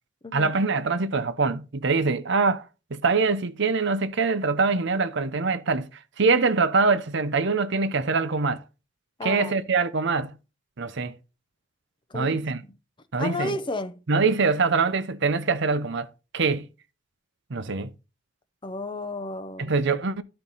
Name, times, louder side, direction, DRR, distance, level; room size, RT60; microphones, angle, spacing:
voice 1, 0.3-2.6 2.9-5.9 6.2-8.6 9.2-10.4 10.8-11.1 12.1-12.6 13.1-13.6 14.1-16.1 16.3-16.7 17.5-17.9 19.6-20.2, right 4 dB, 60° right, 0.7 m, -24 dB
voice 2, 9.2-9.7 12.1-12.4 13.2-13.9 18.6-19.7, left 2 dB, 25° left, 0.6 m, -32 dB
12.5 x 4.4 x 4.0 m
head